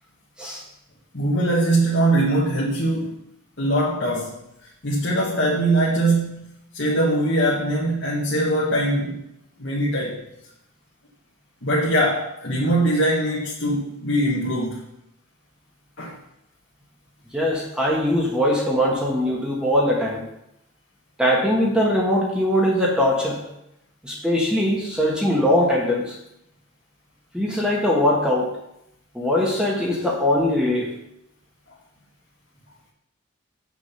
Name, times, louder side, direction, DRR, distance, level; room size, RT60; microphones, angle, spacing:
voice 1, 1.1-3.2 3.6-4.3 4.8-6.5 6.7-9.2 9.6-10.2 11.6-14.8 16.0-16.2, right 1 dB, 60° left, -4 dB, 1.5 m, -22 dB
voice 2, 17.3-20.2 21.2-23.4 24.0-26.2 27.3-28.5 29.1-30.9, left 1 dB, 5° right, -3 dB, 1.4 m, -21 dB
7.7 x 6.3 x 5.7 m, 0.81 s
head